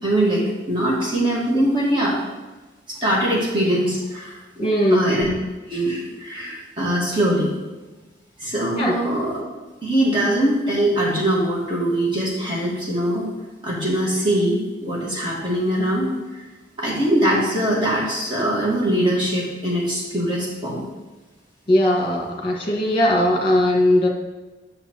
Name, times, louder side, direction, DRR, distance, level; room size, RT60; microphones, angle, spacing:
voice 1, 0.0-2.2 2.9-5.3 5.7-7.5 8.4-9.4 9.8-13.3 13.6-16.4 16.8-20.8, right 1 dB, 25° right, -5 dB, 1.6 m, -22 dB
voice 2, 4.6-5.1 8.8-8.9 21.7-24.1, left 1 dB, 30° left, -1 dB, 1.5 m, -19 dB
8.4 x 6.7 x 3.0 m, 1.2 s
head